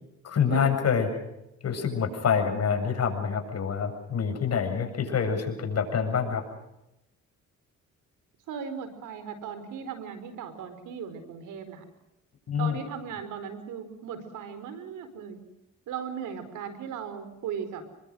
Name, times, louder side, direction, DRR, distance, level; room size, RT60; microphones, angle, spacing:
voice 1, 0.2-1.1 1.6-6.4 12.5-12.8, left 7 dB, 55° left, 5 dB, 7.6 m, -26 dB
voice 2, 8.5-11.8 12.6-15.4 15.9-17.8, right 7 dB, 85° right, 11 dB, 4.7 m, -37 dB
29.0 x 22.5 x 6.4 m, 0.89 s
cardioid pair, 90°, 30 cm